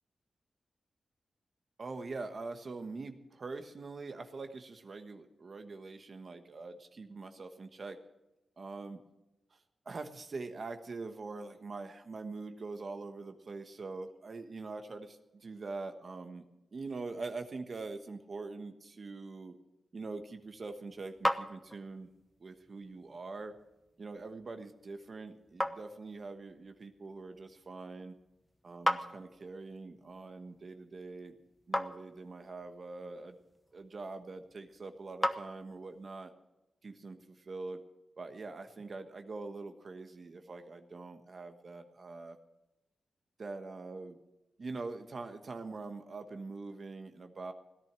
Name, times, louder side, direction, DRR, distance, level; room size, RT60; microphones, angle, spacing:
voice 1, 1.8-8.0 8.6-9.0 9.5-9.6 9.8-16.5 16.7-19.5 19.9-22.1 22.4-23.5 24.0-28.1 28.6-31.3 31.7-33.4 33.7-36.3 36.8-37.8 38.2-42.4 43.4-44.2 44.6-47.5, right 3 dB, 50° right, 7 dB, 1.3 m, -43 dB
sound 1, 20.3-36.1, left 1 dB, 10° left, 1.0 m, -41 dB
17.0 x 10.5 x 6.1 m, 0.98 s
cardioid pair, 90°, 0 cm